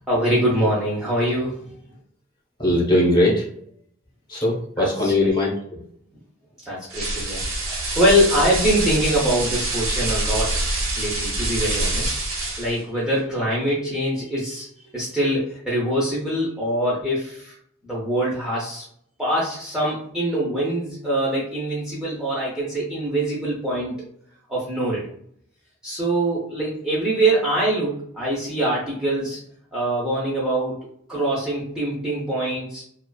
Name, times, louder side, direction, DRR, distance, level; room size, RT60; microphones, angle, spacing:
voice 1, 0.1-1.7 4.8-5.3 6.7-10.6 11.0-12.2 12.6-14.7 14.9-17.5 17.8-18.8 19.2-23.9 24.5-25.1 25.8-29.4 29.7-30.8 31.1-32.8, right 1 dB, 5° right, -8 dB, 0.5 m, -23 dB
voice 2, 2.6-3.5 4.3-5.9, left 1 dB, 20° left, -4 dB, 0.9 m, -20 dB
sound 1, 6.9-12.8, right 2 dB, 90° right, 0.9 m, -25 dB
2.4 x 2.3 x 2.2 m, 0.65 s
head